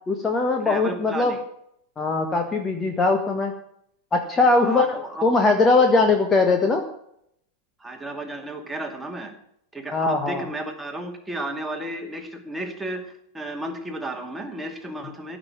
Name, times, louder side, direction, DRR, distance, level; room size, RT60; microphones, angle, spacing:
voice 1, 0.1-1.3 2.0-3.5 4.1-6.8 9.9-10.4, left 3 dB, 20° left, 4 dB, 1.5 m, -20 dB
voice 2, 0.6-1.4 4.6-5.2 7.8-9.3 9.7-15.4, right 1 dB, 5° right, 3 dB, 2.4 m, -33 dB
15.0 x 6.4 x 9.6 m, 0.72 s
figure-of-eight pair, 90°, 0 cm